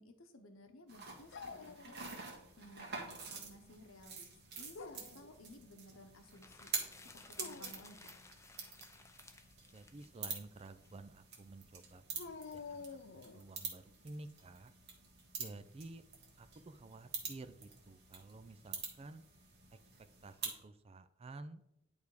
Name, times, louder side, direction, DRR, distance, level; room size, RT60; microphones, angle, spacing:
voice 1, 0.0-2.1 2.6-4.3 4.6-6.7 7.1-8.2, left 1 dB, 85° left, 6 dB, 0.9 m, -58 dB
sound 1, 0.9-20.6, right 5 dB, 55° right, 1.8 m, -47 dB
Dog, 1.3-2.5 2.8-3.5 4.5-5.3 7.2-7.9 12.2-13.5, left 4 dB, 60° left, 0.5 m, -50 dB
sound 2, 6.2-10.9, left 3 dB, 15° left, 0.6 m, -58 dB
voice 2, 9.7-12.0 12.5-14.7 15.4-16.0 16.4-19.2 20.2-21.6, right 2 dB, 30° right, 11 dB, 0.4 m, -52 dB
10.5 x 3.5 x 4.8 m, 0.81 s
head